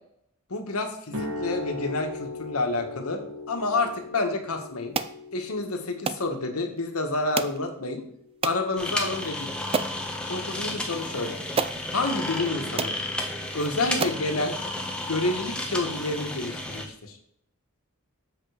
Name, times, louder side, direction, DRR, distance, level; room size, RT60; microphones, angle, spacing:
voice 1, 0.5-4.9 5.3-8.0 8.4-9.6 10.3-11.4 11.9-13.0 13.5-14.5 15.1-17.2, left 2 dB, 80° left, 5 dB, 1.3 m, -29 dB
sound 1, 1.1-9.1, left 2 dB, 65° right, 1.4 m, -39 dB
sound 2, 4.9-5.2 6.1-6.3 7.4-7.6 8.4-8.6 9.2-9.3 9.7-10.0 11.0-11.1 11.6-11.8 12.4-12.5 12.8-13.0 13.6-13.7 14.0-14.3, right 5 dB, 25° right, 0.3 m, -29 dB
sound 3, 8.8-16.8, left 1 dB, 5° left, 1.0 m, -32 dB
7.2 x 5.1 x 4.9 m, 0.71 s
head